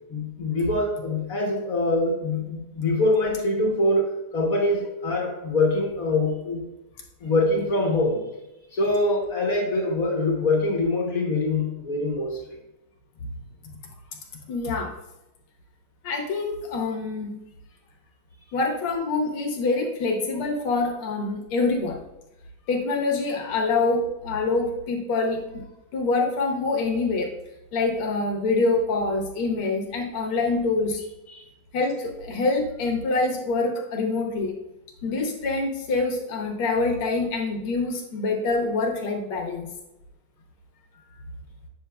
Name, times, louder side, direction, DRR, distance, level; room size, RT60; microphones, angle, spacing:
voice 1, 0.1-6.7 7.2-8.2 8.7-12.6 31.3-31.4, left 2 dB, 50° left, 0 dB, 1.3 m, -24 dB
voice 2, 14.5-14.9 16.0-17.3 18.5-22.0 22.7-25.6 25.9-27.3 27.7-31.0 31.7-34.5 35.0-39.7, left 3 dB, 85° left, 2 dB, 2.0 m, -25 dB
9.0 x 6.4 x 2.3 m, 0.92 s
omnidirectional pair, 2.3 m